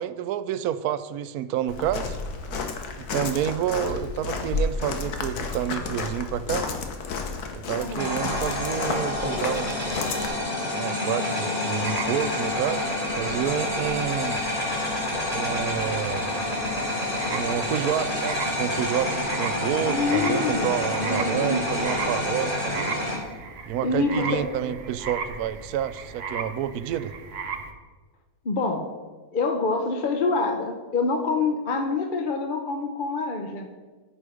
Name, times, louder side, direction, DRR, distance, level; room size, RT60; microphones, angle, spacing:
voice 1, 0.0-2.2 3.0-6.7 7.5-10.0 10.7-14.4 15.3-16.3 17.3-22.9 23.7-27.1, right 10 dB, 80° right, 13 dB, 1.0 m, -29 dB
Walk footsteps, 1.7-10.3, left 4 dB, 90° left, 1.5 m, -31 dB
voice 2, 7.8-8.1 19.8-21.6 23.8-24.5 28.4-28.9 29.3-33.7, left 3 dB, 45° left, 5 dB, 0.8 m, -26 dB
sound 1, 8.0-23.2, left 1 dB, 25° left, 4.0 m, -28 dB
sound 2, 11.8-27.7, right 5 dB, 50° right, 0.9 m, -38 dB
14.0 x 5.3 x 5.0 m, 1.3 s
omnidirectional pair, 1.6 m